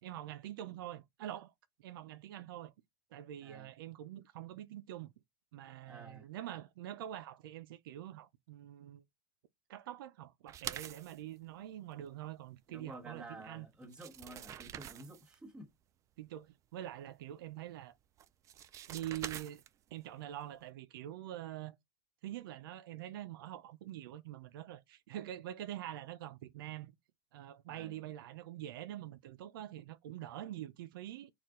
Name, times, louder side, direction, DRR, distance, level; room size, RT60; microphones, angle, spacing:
voice 1, 0.0-1.5 1.8-2.7 3.1-5.1 5.5-9.0 9.7-13.7 16.2-17.9 18.9-19.6 19.9-21.8 22.2-26.9 27.3-31.3, right 12 dB, 85° right, 0.5 m, -45 dB
voice 2, 5.9-6.3 12.7-15.7 27.7-28.0, right 1 dB, 5° right, 1.3 m, -51 dB
sound 1, 10.5-11.2 13.4-13.5 13.8-15.3 18.2-19.9, right 10 dB, 25° right, 0.3 m, -45 dB
4.4 x 2.4 x 3.6 m
supercardioid pair, 140°, 11 cm